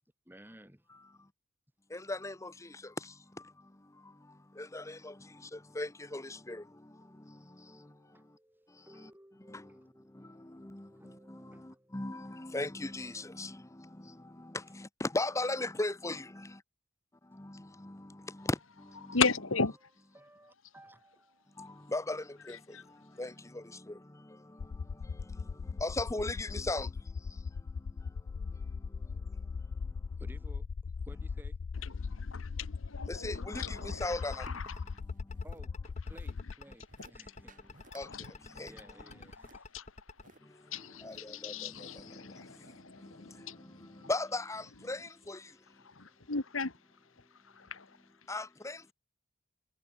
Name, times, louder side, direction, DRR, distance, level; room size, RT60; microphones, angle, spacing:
voice 1, 0.3-0.8 7.0-12.5 20.1-21.8 30.1-30.7 31.0-31.6 35.4-37.5 38.6-39.7 42.6-43.4, right 1 dB, 10° right, 3.8 m, -58 dB
voice 2, 1.9-2.7 4.6-5.1 5.5-6.6 9.5-9.6 10.4-10.9 11.3-13.6 14.4-16.6 17.4-18.6 19.0-19.2 21.6-22.6 23.2-24.0 25.8-26.9 33.1-34.4 37.9-38.1 38.6-38.7 41.0-42.2 43.0-43.1 44.1-45.4 48.3-48.9, left 2 dB, 15° left, 0.9 m, -37 dB
voice 3, 19.0-19.7 22.7-22.8 32.0-35.0 38.0-38.6 39.5-39.9 40.7-44.1 45.8-46.8 47.4-47.9, left 4 dB, 85° left, 2.1 m, -36 dB
sound 1, 24.6-36.5, left 5 dB, 55° left, 0.4 m, -39 dB
sound 2, 33.4-40.2, left 3 dB, 35° left, 1.7 m, -49 dB
sound 3, 33.8-35.6 35.9-36.4 36.8-37.1 37.5-38.1 38.4-40.4 40.9-41.5 42.0-42.1, right 2 dB, 40° right, 5.8 m, -59 dB
head